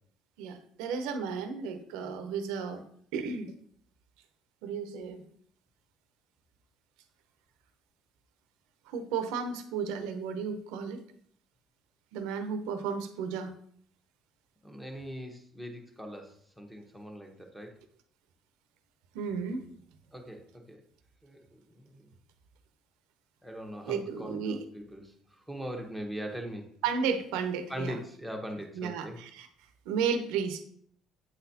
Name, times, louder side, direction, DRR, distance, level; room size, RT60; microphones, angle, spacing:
voice 1, 0.4-2.8 3.1-3.5 4.6-5.2 8.9-11.0 12.1-13.5 19.1-19.7 23.9-24.6 26.8-28.0 28.7-29.5 29.9-30.6, right 6 dB, 90° right, 8 dB, 0.7 m, -33 dB
voice 2, 14.6-17.8 20.1-20.8 21.2-22.1 23.4-26.7 27.7-29.2, equal, ahead, 1 dB, 1.1 m, -41 dB
8.5 x 4.1 x 2.8 m, 0.62 s
cardioid pair, 115°, 0 cm